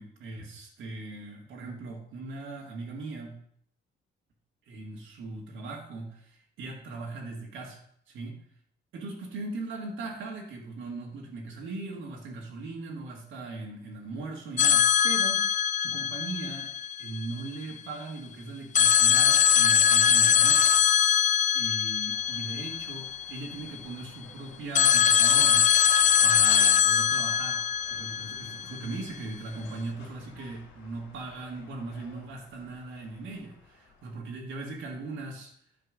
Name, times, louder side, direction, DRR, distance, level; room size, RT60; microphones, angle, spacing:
voice 1, 0.0-3.4 4.7-7.8 8.1-8.4 8.9-16.7 17.0-20.7 21.5-25.8 26.2-27.6 27.9-35.5, right 3 dB, 80° right, 0 dB, 2.0 m, -39 dB
sound 1, 14.6-17.5 18.7-23.7 24.8-28.9, left 8 dB, 40° left, 0.4 m, -22 dB
sound 2, 22.1-34.1, left 4 dB, 80° left, 2.8 m, -53 dB
9.2 x 4.5 x 6.4 m, 0.66 s
cardioid pair, 90°, 20 cm